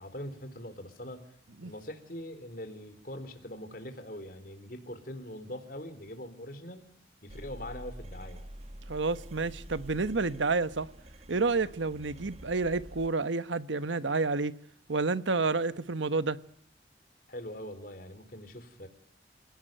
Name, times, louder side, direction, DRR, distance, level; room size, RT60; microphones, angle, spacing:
voice 1, 0.0-1.3 1.6-6.9 7.2-8.4 17.3-18.9, left 1 dB, 50° left, 3.9 m, -42 dB
sound 1, 7.3-13.1, right 1 dB, 35° right, 1.2 m, -47 dB
voice 2, 8.9-10.9 11.3-14.5 14.9-16.4, right 3 dB, 85° right, 1.1 m, -29 dB
29.0 x 17.5 x 9.2 m
head